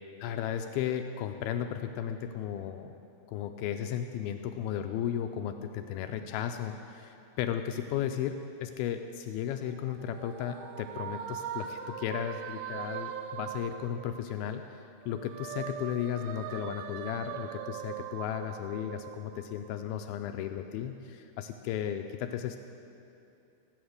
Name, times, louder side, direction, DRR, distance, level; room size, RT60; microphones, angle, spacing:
voice 1, 0.2-3.0 3.3-14.6 15.1-22.6, left 10 dB, 85° left, 6 dB, 2.2 m, -35 dB
sound 1, 9.7-14.6 15.0-19.8, right 9 dB, 80° right, 2.2 m, -41 dB
16.0 x 8.8 x 6.5 m, 2.7 s
omnidirectional pair, 4.8 m